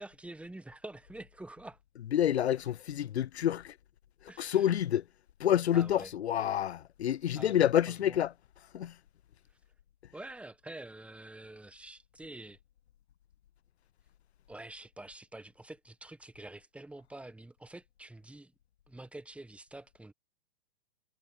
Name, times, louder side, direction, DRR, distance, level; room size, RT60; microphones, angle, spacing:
voice 1, 0.0-1.8 4.3-4.7 5.7-6.1 7.3-8.2 10.1-12.6 14.5-18.5 18.9-20.1, right 2 dB, 5° right, 1.4 m, -47 dB
voice 2, 2.1-3.7 4.4-5.0 5.4-8.3 8.7-9.0, left 10 dB, 90° left, 0.5 m, -28 dB
hypercardioid pair, 110°, 32 cm